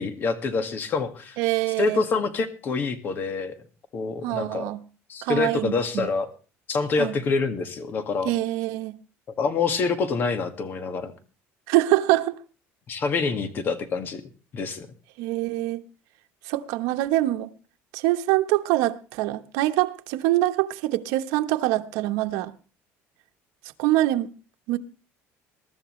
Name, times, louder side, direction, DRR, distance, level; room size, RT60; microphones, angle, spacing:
voice 1, 0.0-1.4 1.8-3.5 3.9-4.6 5.1-6.3 6.7-8.3 9.4-11.1 12.9-14.2 14.5-14.9, left 4 dB, 35° left, 1.9 m, -26 dB
voice 2, 1.4-2.0 4.2-4.8 5.2-6.1 7.0-7.1 8.2-8.9 11.7-12.3 15.2-15.8 16.5-17.5 17.9-22.5 23.8-24.3 24.7-24.8, right 16 dB, 85° right, 1.2 m, -24 dB
22.5 x 12.5 x 3.2 m
cardioid pair, 150°, 6 cm